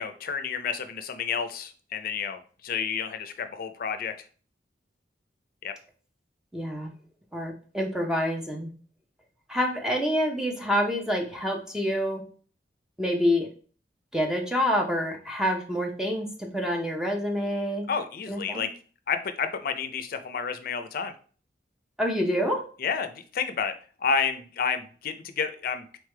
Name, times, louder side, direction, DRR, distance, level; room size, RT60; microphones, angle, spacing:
voice 1, 0.0-4.1 5.6-5.7 17.9-18.7 19.1-21.1 22.8-23.7 24.0-26.0, left 6 dB, 55° left, 9 dB, 0.5 m, -30 dB
voice 2, 6.5-6.9 7.3-8.7 9.5-12.2 13.0-13.5 14.1-17.9 18.3-18.7 22.0-22.6, equal, 5° right, 1 dB, 0.6 m, -27 dB
3.9 x 3.3 x 3.3 m, 0.40 s
head